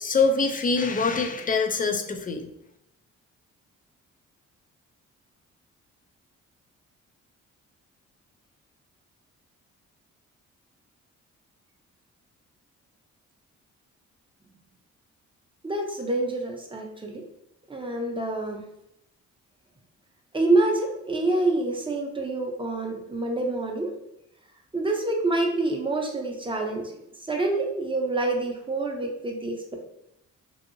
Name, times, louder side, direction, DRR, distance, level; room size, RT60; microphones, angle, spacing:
voice 1, 0.0-2.5, left 4 dB, 25° left, 5 dB, 0.4 m, -24 dB
voice 2, 15.6-17.2 17.7-18.6 20.3-23.9 24.7-26.8 27.3-29.8, right 2 dB, 15° right, 2 dB, 0.7 m, -26 dB
2.7 x 2.6 x 2.6 m, 0.80 s
supercardioid pair, 65°, 31 cm